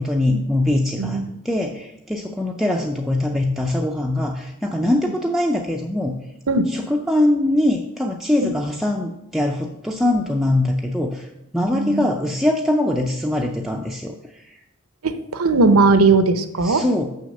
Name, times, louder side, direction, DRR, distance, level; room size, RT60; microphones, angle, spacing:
voice 1, 0.0-6.2 6.7-11.3 11.5-14.4 16.6-17.1, left 1 dB, ahead, 1 dB, 0.5 m, -22 dB
voice 2, 11.7-12.1 15.0-16.8, right 3 dB, 90° right, 10 dB, 0.8 m, -18 dB
6.5 x 6.2 x 6.5 m, 0.86 s
head